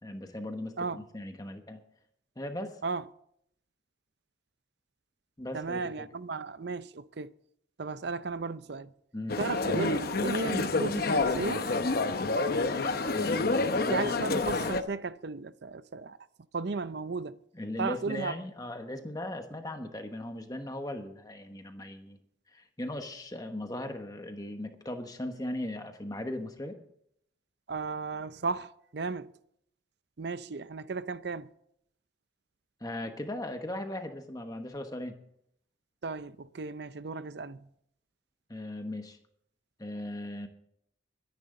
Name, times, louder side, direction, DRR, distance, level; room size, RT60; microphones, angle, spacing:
voice 1, 0.0-0.7 1.1-1.8 2.4-2.8 5.4-6.1 9.1-9.4 13.1-14.3 17.5-22.2 22.5-26.8 32.8-35.1 38.5-39.2 39.8-40.5, left 1 dB, 20° left, 1.1 m, -38 dB
voice 2, 5.5-7.3 7.8-8.9 9.4-11.7 13.9-16.2 16.5-17.4 17.8-18.4 27.7-29.3 30.2-31.5 36.0-37.7, right 4 dB, 55° right, 0.5 m, -35 dB
sound 1, 9.3-14.8, left 3 dB, 50° left, 0.8 m, -28 dB
22.5 x 10.5 x 3.8 m
head